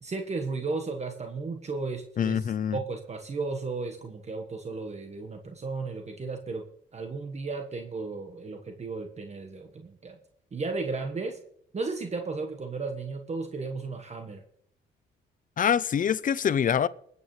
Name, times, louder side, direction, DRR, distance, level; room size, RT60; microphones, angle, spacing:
voice 1, 0.0-6.6 6.9-10.2 10.5-11.4 11.7-14.4, right 3 dB, 35° right, 1.3 m, -34 dB
voice 2, 2.2-2.8 15.6-16.9, left 8 dB, 40° left, 0.5 m, -25 dB
20.5 x 8.3 x 3.2 m
cardioid pair, 90°, 20 cm